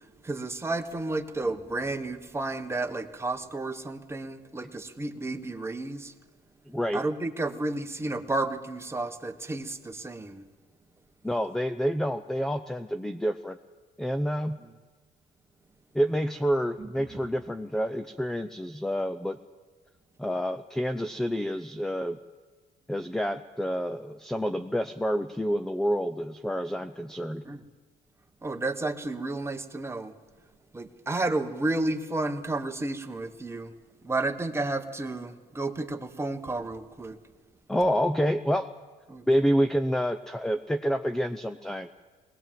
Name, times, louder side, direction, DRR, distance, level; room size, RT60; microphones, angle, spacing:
voice 1, 0.2-6.1 6.9-10.4 14.6-14.7 16.8-17.1 27.4-27.6 28.4-30.1 30.7-33.7 34.0-37.2 39.1-39.2, right 2 dB, 15° right, 7 dB, 1.3 m, -32 dB
voice 2, 6.7-7.0 11.2-13.6 14.0-14.6 15.9-19.4 20.2-22.2 22.9-27.4 37.7-38.7 39.3-41.9, equal, 5° left, 8 dB, 0.7 m, -28 dB
21.0 x 19.0 x 7.6 m, 1.4 s
cardioid pair, 110°, 17 cm